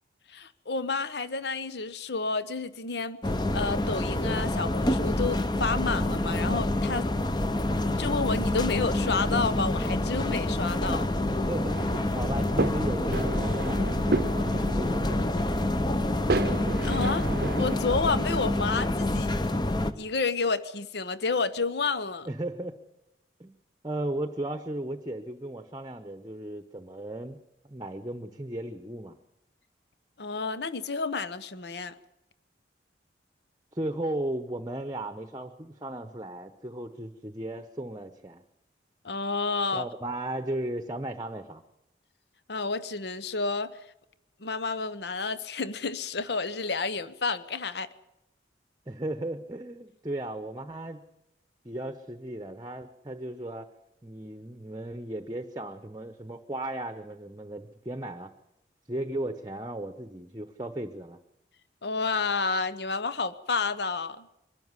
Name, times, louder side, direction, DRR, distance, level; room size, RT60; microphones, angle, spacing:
voice 1, 0.3-3.2 3.5-7.1 7.8-11.1 16.8-17.3 17.6-19.3 20.0-22.3 30.2-31.9 39.0-39.9 42.5-43.7 44.4-47.9 61.8-64.3, left 4 dB, 65° left, 14 dB, 0.9 m, -30 dB
sound 1, 3.2-19.9, left 1 dB, 25° left, 0.8 m, -27 dB
voice 2, 11.3-13.8 14.2-15.8 22.2-22.8 23.4-23.6 23.8-27.4 27.7-29.2 33.7-38.4 39.7-41.6 48.9-51.0 51.6-53.7 54.0-58.3 58.9-61.2, right 1 dB, 20° right, 9 dB, 0.9 m, -36 dB
sound 2, 11.7-17.8, right 2 dB, 55° right, 0.7 m, -33 dB
23.0 x 12.5 x 9.7 m, 0.88 s
head